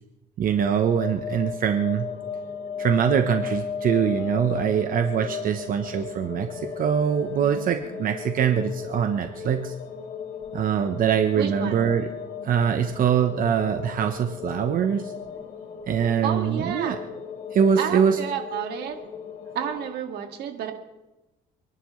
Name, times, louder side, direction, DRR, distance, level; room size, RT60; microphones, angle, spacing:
voice 1, 0.4-2.1 2.8-9.7 10.5-12.1 12.4-15.1 15.9-17.0 17.5-18.2, right 8 dB, 55° right, 6 dB, 1.0 m, -23 dB
sound 1, 0.6-19.9, left 6 dB, 45° left, 2.9 m, -36 dB
sound 2, 4.2-9.2, left 1 dB, 20° left, 3.5 m, -48 dB
voice 2, 11.4-11.9 16.2-17.0 17.8-19.0 19.5-20.7, right 9 dB, 75° right, 4 dB, 2.1 m, -30 dB
29.0 x 11.0 x 3.2 m, 1.0 s
cardioid pair, 110°, 17 cm